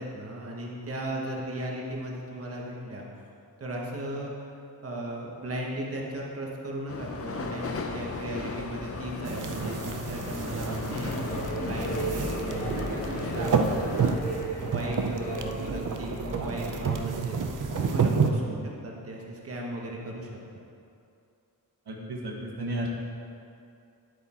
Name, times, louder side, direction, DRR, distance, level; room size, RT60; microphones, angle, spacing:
voice 1, 0.0-3.1 3.6-4.3 4.8-14.1 14.7-17.4 17.8-20.3, right 1 dB, 35° right, -2 dB, 1.2 m, -36 dB
sound 1, 6.9-14.1, left 3 dB, 35° left, 0.7 m, -36 dB
sound 2, 9.2-18.3, right 6 dB, 55° right, 0.6 m, -30 dB
sound 3, 10.2-18.0, right 1 dB, 20° left, 1.1 m, -37 dB
voice 2, 21.9-22.9, right 1 dB, 90° right, -1 dB, 1.4 m, -34 dB
9.8 x 8.0 x 4.3 m, 2.6 s
wide cardioid pair, 175°, 38 cm